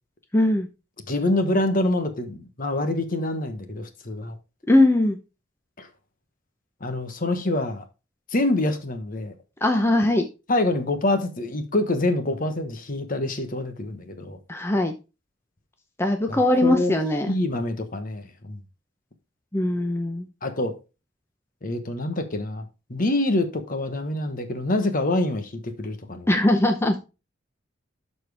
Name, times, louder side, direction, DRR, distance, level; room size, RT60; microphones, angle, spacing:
voice 1, 0.3-0.7 4.7-5.2 9.6-10.3 14.5-14.9 16.0-17.3 19.5-20.3 26.3-27.0, left 1 dB, 15° left, 0.7 m, -20 dB
voice 2, 1.1-4.4 5.8-5.9 6.8-7.8 8.3-9.3 10.5-14.4 16.3-17.0 17.3-18.6 20.4-20.8 21.6-26.3, left 2 dB, 45° left, 1.2 m, -26 dB
12.0 x 4.4 x 3.4 m
head